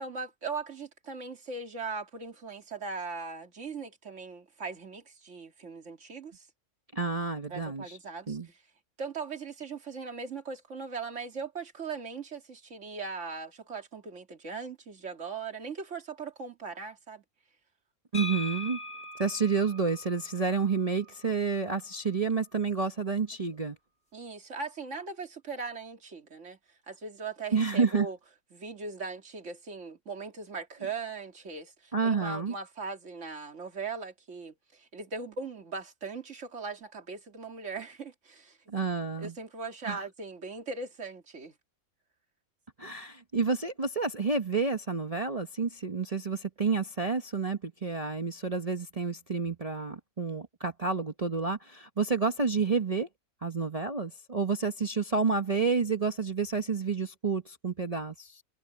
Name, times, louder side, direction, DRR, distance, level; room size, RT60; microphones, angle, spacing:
voice 1, 0.0-6.5 7.5-8.6 9.0-17.2 24.1-26.6 26.9-28.2 28.5-38.6 39.2-41.5, right 4 dB, 55° right, 2.8 m, -39 dB
voice 2, 6.9-8.0 8.3-8.5 18.1-18.8 19.2-23.8 27.5-28.1 31.9-32.5 38.7-39.3 39.8-40.0 42.8-53.1 53.4-58.4, right 4 dB, 30° right, 1.0 m, -29 dB
sound 1, 18.1-21.9, left 2 dB, 50° left, 4.4 m, -42 dB
omnidirectional pair, 1.5 m